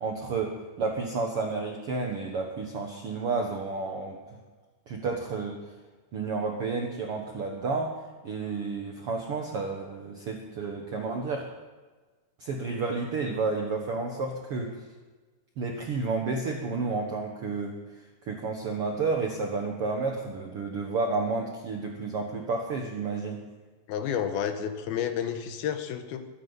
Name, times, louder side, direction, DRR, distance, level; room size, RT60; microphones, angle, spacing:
voice 1, 0.0-4.2 4.9-5.6 6.1-8.0 8.2-11.5 12.4-14.7 15.6-17.8 18.3-23.4, right 4 dB, 80° right, 1 dB, 1.2 m, -31 dB
voice 2, 23.9-26.3, left 8 dB, 80° left, 8 dB, 2.8 m, -30 dB
23.0 x 11.0 x 4.0 m, 1.3 s
omnidirectional pair, 4.5 m